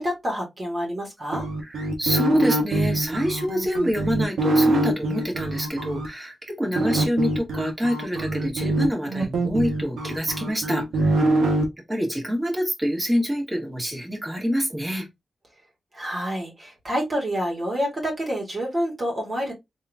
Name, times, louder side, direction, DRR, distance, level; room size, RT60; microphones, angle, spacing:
voice 1, 0.0-1.5 15.9-19.5, equal, 40° right, 2.0 m, -28 dB
sound 1, 1.3-6.1 6.8-11.6, right 2 dB, 85° right, 1.1 m, -24 dB
voice 2, 1.6-11.2 11.9-15.1, equal, 20° right, 2.0 m, -26 dB
3.5 x 2.9 x 3.5 m
cardioid pair, 50°, 0 cm